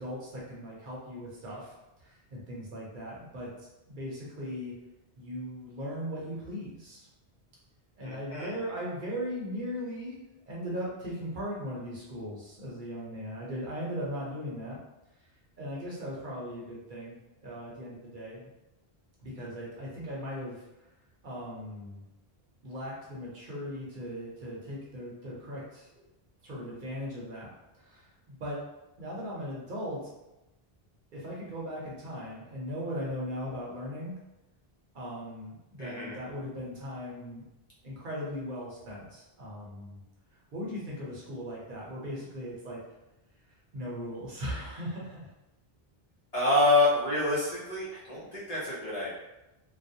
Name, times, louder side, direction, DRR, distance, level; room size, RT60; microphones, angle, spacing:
voice 1, 0.0-4.7 5.2-7.1 8.0-10.2 10.5-14.8 15.2-15.3 15.6-18.5 19.2-21.0 21.2-22.0 22.6-26.0 26.4-27.5 27.7-28.6 29.0-30.1 31.1-34.2 34.9-37.4 37.8-40.0 40.3-42.8 43.5-45.3, equal, 55° right, -5 dB, 0.8 m, -38 dB
voice 2, 8.0-8.6 35.8-36.1 46.3-49.1, left 2 dB, 45° left, -8 dB, 0.7 m, -27 dB
2.3 x 2.0 x 2.7 m, 0.96 s
omnidirectional pair, 1.0 m